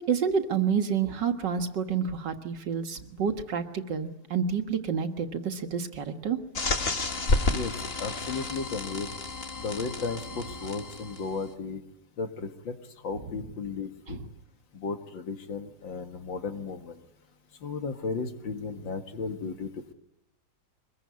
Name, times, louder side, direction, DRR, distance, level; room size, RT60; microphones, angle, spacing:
voice 1, 0.1-6.4 14.1-14.3, right 6 dB, 70° right, 6 dB, 2.2 m, -29 dB
sound 1, 6.5-11.4, left 3 dB, 35° left, 1.7 m, -31 dB
voice 2, 8.0-9.1 9.6-11.8 12.2-12.7 13.0-14.2 14.7-17.0 17.6-19.9, left 4 dB, 85° left, 6 dB, 2.5 m, -34 dB
24.0 x 21.5 x 9.5 m, 0.88 s
omnidirectional pair, 2.0 m